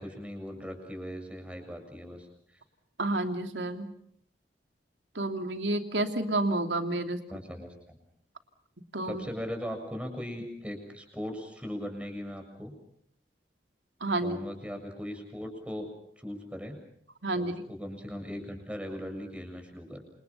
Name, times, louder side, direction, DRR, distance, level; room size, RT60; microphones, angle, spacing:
voice 1, 0.0-2.3 7.3-8.0 9.1-12.7 14.2-15.9 16.2-16.8 17.4-20.0, equal, 5° right, 5 dB, 7.2 m, -39 dB
voice 2, 3.0-3.9 5.1-7.2 8.9-9.2 14.0-14.4 17.2-17.6, right 2 dB, 85° right, 5 dB, 3.0 m, -30 dB
29.0 x 27.5 x 5.7 m, 0.68 s
head